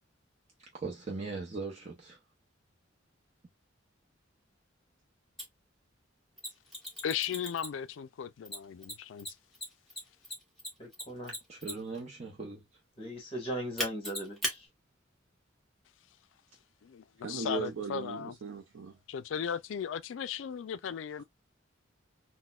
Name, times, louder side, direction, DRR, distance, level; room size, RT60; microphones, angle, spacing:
voice 1, 0.7-2.2 11.5-12.7, right 3 dB, 35° right, 0.6 m, -39 dB
Mechanisms, 5.4-5.5 6.4-7.9 8.5-12.0 13.8-14.6, equal, ahead, 1.3 m, -37 dB
voice 2, 7.0-9.4 16.8-18.3 19.1-21.2, left 8 dB, 70° left, 0.3 m, -36 dB
voice 3, 10.8-11.3 13.0-14.7, right 1 dB, 30° left, 1.6 m, -38 dB
voice 4, 17.2-19.0, right 4 dB, 80° right, 0.5 m, -38 dB
3.9 x 2.2 x 2.3 m
head